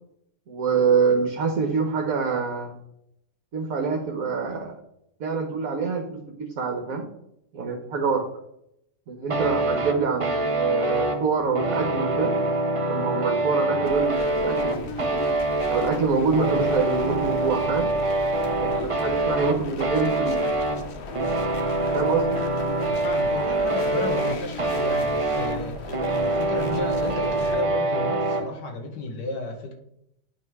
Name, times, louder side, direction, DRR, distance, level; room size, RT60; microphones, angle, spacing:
voice 1, 0.5-2.7 3.5-4.7 5.2-7.0 7.5-8.2 9.1-12.3 12.9-15.0 15.7-17.9 18.6-20.4 21.9-22.4, right 5 dB, 55° right, 3 dB, 1.5 m, -25 dB
sound 1, 9.3-28.5, right 2 dB, 35° right, 0.5 m, -25 dB
sound 2, 13.9-27.6, left 3 dB, 45° left, 1.0 m, -38 dB
voice 2, 22.8-25.9 26.2-29.7, left 2 dB, 75° left, 3 dB, 2.2 m, -33 dB
9.8 x 5.6 x 4.7 m, 0.78 s
omnidirectional pair, 1.9 m